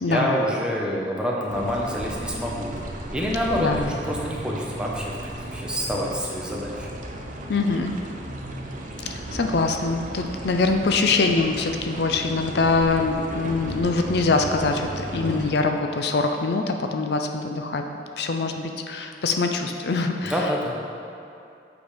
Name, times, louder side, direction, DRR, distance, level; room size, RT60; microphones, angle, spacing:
voice 1, 0.1-2.7 3.1-6.9 15.1-15.5 20.2-20.7, equal, 5° right, -3 dB, 0.9 m, -27 dB
sound 1, 1.5-15.5, right 1 dB, 45° right, 0.7 m, -35 dB
voice 2, 7.5-7.9 9.1-17.8 18.2-20.3, left 3 dB, 65° left, 5 dB, 0.5 m, -23 dB
7.8 x 5.2 x 5.1 m, 2.6 s
head